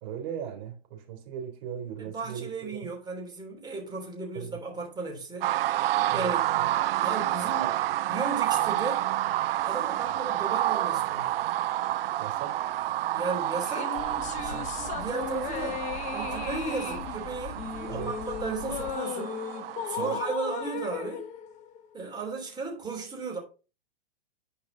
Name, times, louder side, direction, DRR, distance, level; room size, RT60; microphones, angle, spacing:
voice 1, 0.0-2.7 4.4-4.6 6.1-6.7 12.2-12.6 14.5-14.7 17.9-18.1 20.0-20.2, right 9 dB, 45° right, 3.4 m, -38 dB
voice 2, 2.0-5.5 6.1-6.4 7.0-7.8 8.1-9.1 9.6-11.4 13.1-14.0 14.3-15.8 16.1-19.4 19.8-21.2 21.9-23.4, right 4 dB, 15° right, 3.1 m, -35 dB
sound 1, 5.4-20.3, right 14 dB, 70° right, 0.5 m, -29 dB
sound 2, 13.6-22.2, left 8 dB, 25° left, 0.9 m, -37 dB
sound 3, 13.9-18.9, left 6 dB, 45° left, 1.2 m, -43 dB
10.5 x 4.8 x 3.9 m
hypercardioid pair, 135°, 31 cm